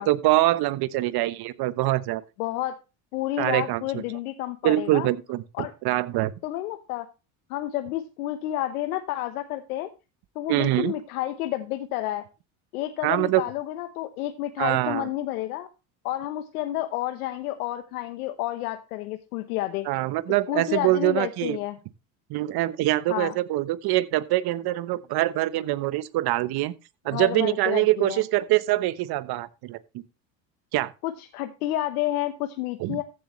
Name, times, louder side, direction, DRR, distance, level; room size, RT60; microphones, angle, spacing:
voice 1, 0.0-2.2 3.4-4.0 4.6-6.3 10.5-10.9 13.0-13.4 14.6-15.1 19.9-21.6 22.3-26.7 27.0-29.8 30.7-30.9 32.8-33.0, right 16 dB, 60° right, 1.1 m, -24 dB
voice 2, 2.4-2.8 3.1-5.1 5.5-5.7 6.4-7.1 7.5-9.9 10.3-12.2 12.7-15.7 16.0-19.9 20.5-21.8 23.1-23.3 27.1-28.2 31.0-33.0, left 14 dB, 90° left, 1.0 m, -30 dB
14.5 x 7.9 x 3.1 m
supercardioid pair, 90°, 43 cm